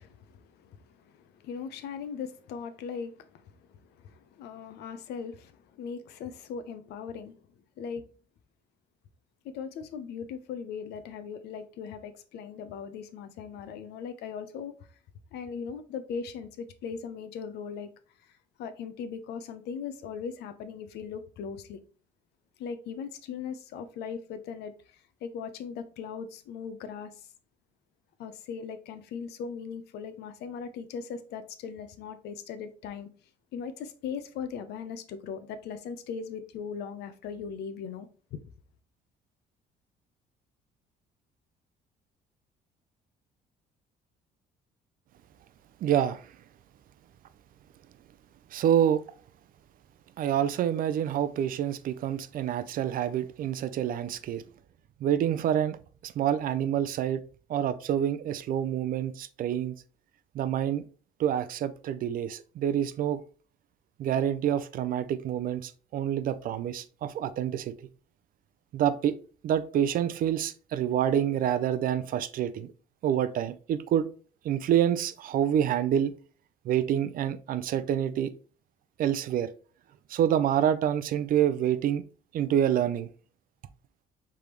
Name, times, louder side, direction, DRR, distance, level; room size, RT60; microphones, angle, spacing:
voice 1, 0.0-7.4 7.8-8.1 9.4-14.8 15.3-17.9 18.2-18.3 18.6-21.8 22.6-27.3 28.2-33.1 33.5-38.4, left 6 dB, 75° left, 0.7 m, -39 dB
voice 2, 45.8-46.3 48.5-49.0 50.2-54.4 55.0-55.8 56.0-57.2 57.5-59.7 60.3-60.8 61.2-63.2 64.0-67.9 68.7-69.1 69.4-72.7 73.0-74.1 74.4-76.1 76.6-78.3 79.0-79.5 80.1-82.0 82.3-83.1, right 10 dB, 55° right, 0.5 m, -27 dB
4.9 x 3.5 x 3.0 m
cardioid pair, 110°, 17 cm